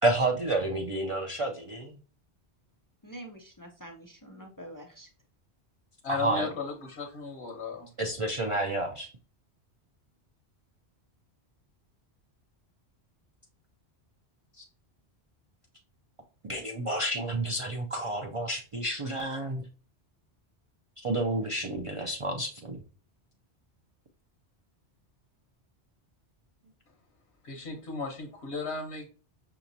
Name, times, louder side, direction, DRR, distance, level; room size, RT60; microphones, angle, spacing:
voice 1, 0.0-2.0 6.1-6.5 8.0-9.1 14.6-14.7 16.4-19.6 21.0-22.8, right 2 dB, 45° right, 1 dB, 0.4 m, -30 dB
voice 2, 3.0-5.1, right 1 dB, 30° left, 2 dB, 0.4 m, -46 dB
voice 3, 6.0-7.9 27.4-29.1, left 4 dB, 75° left, 1 dB, 1.2 m, -35 dB
5.7 x 2.8 x 2.6 m, 0.37 s
omnidirectional pair, 1.1 m